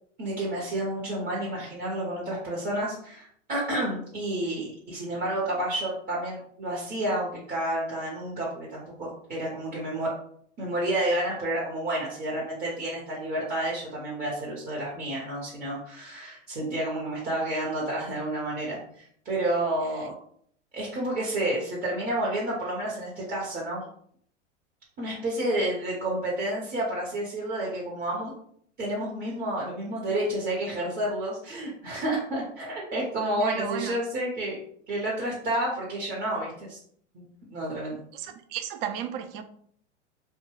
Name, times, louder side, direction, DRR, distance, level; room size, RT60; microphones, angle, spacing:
voice 1, 0.2-10.1 10.6-20.1 20.7-23.8 25.0-28.3 28.8-34.6 34.9-36.8 37.1-38.0, right 1 dB, 25° right, 0.8 m, -30 dB
voice 2, 33.3-34.0 38.1-39.4, right 9 dB, 50° right, 0.5 m, -34 dB
2.6 x 2.2 x 3.0 m
hypercardioid pair, 115°, 37 cm